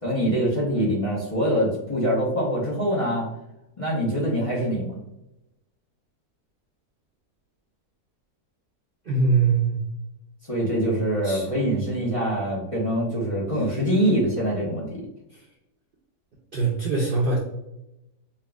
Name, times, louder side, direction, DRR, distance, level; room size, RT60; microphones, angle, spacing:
voice 1, 0.0-3.3 3.8-5.0 10.4-15.0, equal, 25° left, -5 dB, 0.8 m, -24 dB
voice 2, 9.1-9.8 11.2-11.5 16.5-17.4, right 4 dB, 80° right, -3 dB, 0.4 m, -22 dB
5.5 x 2.4 x 2.3 m, 0.89 s
omnidirectional pair, 1.7 m